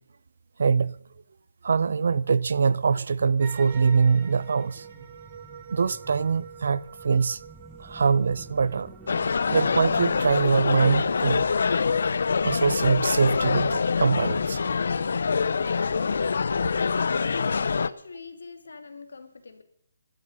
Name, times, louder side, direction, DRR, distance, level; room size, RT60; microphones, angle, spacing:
voice 1, 0.6-1.0 1.6-4.9 5.7-7.4 7.8-8.9 9.5-11.5 12.4-14.6, right 5 dB, 55° right, 0.6 m, -23 dB
sound 1, 2.5-16.8, right 2 dB, 5° right, 0.9 m, -52 dB
sound 2, 3.4-11.0, right 7 dB, 25° right, 1.9 m, -47 dB
sound 3, 9.1-17.9, left 5 dB, 55° left, 0.7 m, -25 dB
voice 2, 17.6-19.6, left 4 dB, 80° left, 2.6 m, -44 dB
18.5 x 12.5 x 5.5 m
hypercardioid pair, 175°, 0 cm